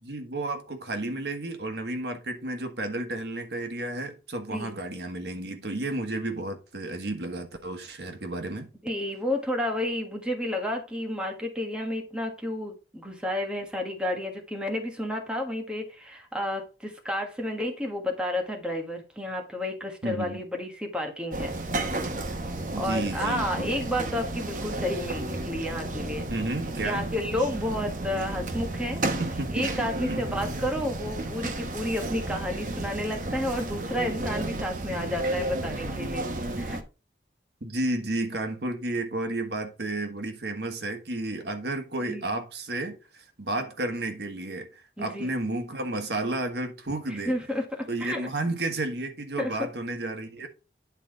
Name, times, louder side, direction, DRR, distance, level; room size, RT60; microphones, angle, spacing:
voice 1, 0.0-8.7 20.0-20.4 22.6-23.7 26.3-27.1 29.2-29.5 30.1-30.2 37.6-47.4 47.9-50.5, right 2 dB, 70° right, 1.4 m, -32 dB
voice 2, 8.8-21.5 22.7-26.3 26.8-29.0 29.5-36.8 42.1-42.3 45.0-45.3 47.1-48.2 49.4-49.7, left 1 dB, 5° right, 1.5 m, -31 dB
sound 1, 21.3-36.8, right 2 dB, 50° right, 1.0 m, -32 dB
9.8 x 3.9 x 4.8 m
head